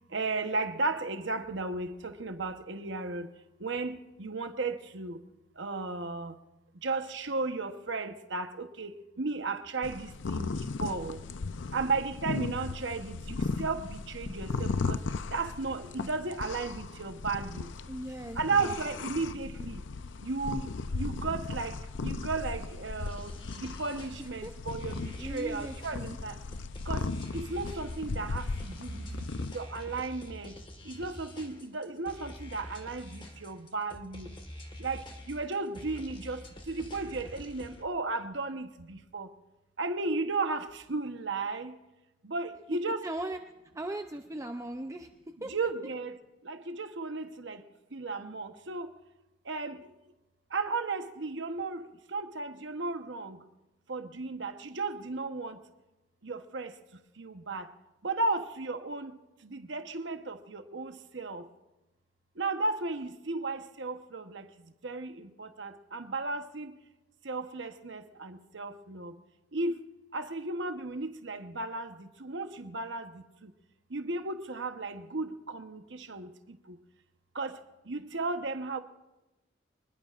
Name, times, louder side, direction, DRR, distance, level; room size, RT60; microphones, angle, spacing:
voice 1, 0.1-3.3 3.6-5.2 5.6-6.4 6.8-11.2 11.7-15.0 15.3-17.7 18.3-19.8 20.2-21.8 22.0-26.4 26.8-27.1 27.3-29.1 29.5-30.6 30.8-34.3 34.8-39.3 39.8-41.8 42.2-43.0 45.5-46.2 46.4-47.6 47.9-48.9 49.5-49.9 50.5-53.4 53.9-55.6 56.2-56.7 57.2-57.7 58.0-59.2 59.4-61.5 62.4-64.5 64.8-66.7 67.2-69.2 69.5-69.8 70.1-73.5 73.9-76.8 77.3-77.6 77.9-78.8, right 3 dB, 70° right, 1.1 m, -35 dB
sound 1, 9.8-29.5, left 3 dB, 75° left, 0.6 m, -37 dB
voice 2, 17.9-18.7 24.2-24.5 25.2-26.2 29.0-29.1 43.0-43.4 43.7-45.1 45.4-45.5, right 1 dB, 15° right, 0.5 m, -38 dB
sound 2, 23.0-37.8, left 1 dB, 25° left, 1.6 m, -46 dB
25.0 x 20.5 x 2.5 m
head